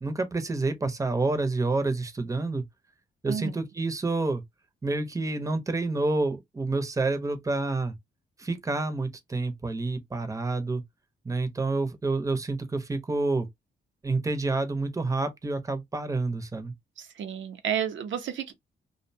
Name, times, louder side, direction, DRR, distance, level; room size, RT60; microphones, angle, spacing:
voice 1, 0.0-2.6 3.2-4.4 4.8-7.9 8.4-10.8 11.2-13.5 14.0-16.7, right 3 dB, 15° right, 0.6 m, -28 dB
voice 2, 3.3-3.6 17.0-18.5, right 8 dB, 80° right, 0.6 m, -31 dB
2.5 x 2.1 x 2.6 m
cardioid pair, 100°, 20 cm